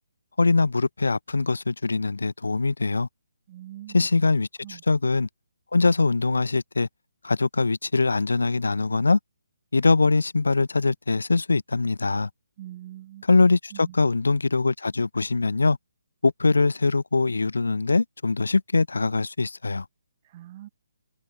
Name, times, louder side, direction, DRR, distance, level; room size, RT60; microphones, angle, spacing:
voice 1, 0.4-3.1 3.9-5.3 5.7-6.9 7.2-9.2 9.7-12.3 13.3-15.8 16.2-19.8, left 3 dB, 65° left, 0.6 m, -22 dB
voice 2, 3.5-4.1 4.6-4.8 12.6-13.2 13.7-14.1 20.2-20.7, right 14 dB, 30° right, 1.2 m, -43 dB
figure-of-eight pair, 140°, 0 cm